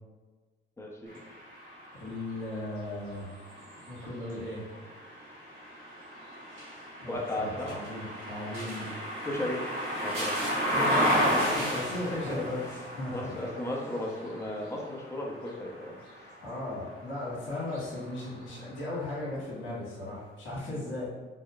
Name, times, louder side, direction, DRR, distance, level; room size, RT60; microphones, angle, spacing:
voice 1, 0.8-1.1 7.1-7.8 9.2-9.6 10.0-10.4 12.1-12.8 13.1-16.3 20.7-20.8, left 1 dB, 15° left, -2 dB, 0.7 m, -35 dB
sound 1, 1.1-17.0 17.6-18.8, equal, 90° right, 1.2 m, -34 dB
voice 2, 2.0-3.3 3.9-4.6 7.0-8.9 10.4-13.4 16.4-21.2, left 2 dB, 80° left, -7 dB, 1.4 m, -36 dB
4.8 x 2.1 x 2.4 m, 1.4 s
cardioid pair, 90°, 20 cm